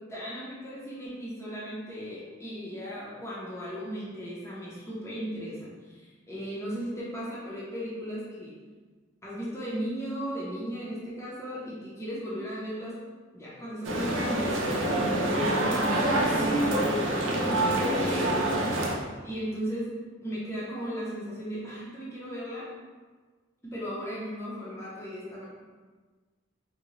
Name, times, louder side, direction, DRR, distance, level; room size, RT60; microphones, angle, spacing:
voice 1, 0.0-8.6 9.2-13.0 13.3-19.9 20.2-22.7 23.6-25.4, equal, 15° left, -7 dB, 0.7 m, -36 dB
sound 1, 13.8-18.9, right 1 dB, 70° right, 0.5 m, -26 dB
3.6 x 2.1 x 3.1 m, 1.4 s
head